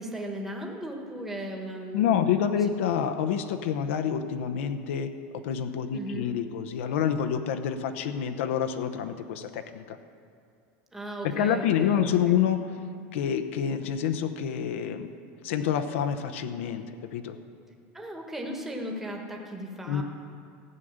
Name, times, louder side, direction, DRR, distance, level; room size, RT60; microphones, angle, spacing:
voice 1, 0.0-2.7 5.9-6.3 10.9-12.4 17.9-20.0, equal, 5° right, 0 dB, 1.2 m, -37 dB
voice 2, 1.9-10.0 11.2-12.7 13.1-15.1 15.4-16.8 17.1-17.4 19.9-20.0, left 8 dB, 85° left, 8 dB, 0.8 m, -27 dB
15.0 x 6.5 x 8.8 m, 2.4 s
supercardioid pair, 165°, 7 cm